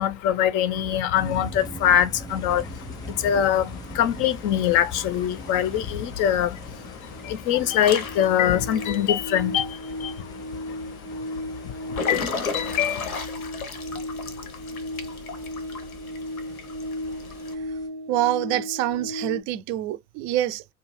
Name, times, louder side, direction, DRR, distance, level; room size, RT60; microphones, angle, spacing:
voice 1, 0.0-13.1, left 10 dB, 45° left, 0.5 m, -24 dB
sound 1, 1.1-17.9, equal, 10° left, 0.8 m, -42 dB
Water / Splash splatter / Drip, 2.3-17.5, left 4 dB, 85° left, 0.7 m, -38 dB
sound 2, 6.6-19.4, left 1 dB, 85° right, 0.9 m, -36 dB
voice 2, 18.1-20.7, right 13 dB, 45° right, 0.4 m, -26 dB
2.6 x 2.3 x 3.0 m
hypercardioid pair, 75°, 42 cm